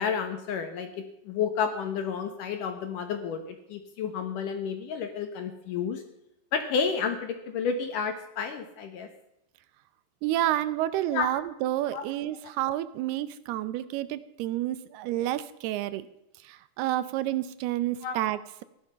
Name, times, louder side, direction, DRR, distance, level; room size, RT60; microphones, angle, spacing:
voice 1, 0.0-6.0 6.5-9.1 11.1-11.3 11.9-12.0 18.0-18.2, left 6 dB, 65° left, 7 dB, 2.2 m, -31 dB
voice 2, 10.2-16.0 16.4-18.6, right 14 dB, 80° right, 14 dB, 2.5 m, -30 dB
16.0 x 11.5 x 5.6 m, 0.83 s
omnidirectional pair, 4.9 m